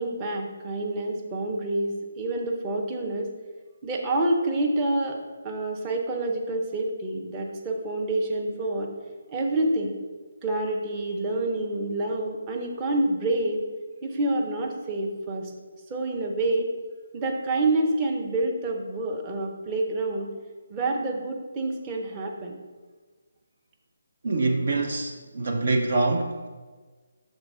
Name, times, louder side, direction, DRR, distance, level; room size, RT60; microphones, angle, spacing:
voice 1, 0.0-3.3 3.8-5.2 5.4-8.9 9.3-9.9 10.4-13.6 14.0-15.5 15.9-16.7 17.1-20.3 20.7-22.6, right 2 dB, 20° right, 0 dB, 0.8 m, -27 dB
voice 2, 24.2-26.5, right 2 dB, 50° right, 3 dB, 0.6 m, -25 dB
6.6 x 3.6 x 4.8 m, 1.4 s
figure-of-eight pair, 145°, 0 cm